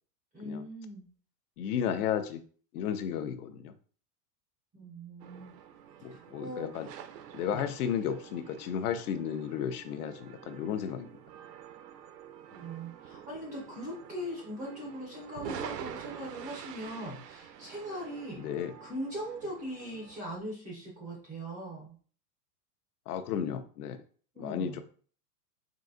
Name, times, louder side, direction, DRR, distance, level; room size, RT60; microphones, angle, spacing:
voice 1, 0.3-1.0 4.7-5.5 6.1-6.7 7.5-7.7 12.5-18.4 18.8-22.0 24.3-24.8, equal, 10° right, -3 dB, 0.4 m, -40 dB
voice 2, 1.6-2.4 2.7-3.7 6.0-6.9 7.3-11.1 18.4-18.7 23.1-24.0 24.4-24.8, left 8 dB, 65° left, 9 dB, 0.7 m, -33 dB
sound 1, 5.2-20.2, right 9 dB, 85° right, 0.7 m, -47 dB
3.9 x 2.6 x 3.8 m, 0.43 s
supercardioid pair, 160°, 48 cm